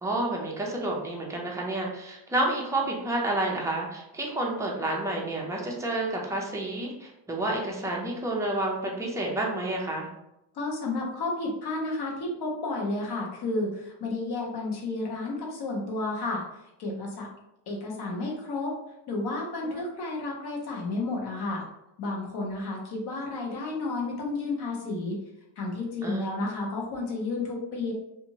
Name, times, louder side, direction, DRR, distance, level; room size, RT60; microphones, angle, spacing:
voice 1, 0.0-10.1 19.6-19.8 26.0-26.3, right 2 dB, 5° right, -2 dB, 0.4 m, -30 dB
voice 2, 10.5-16.4 16.8-17.3 17.7-18.7 19.1-21.6 22.0-25.2 25.6-27.9, left 2 dB, 55° left, -1 dB, 0.9 m, -31 dB
2.8 x 2.5 x 2.7 m, 0.87 s
cardioid pair, 145°, 49 cm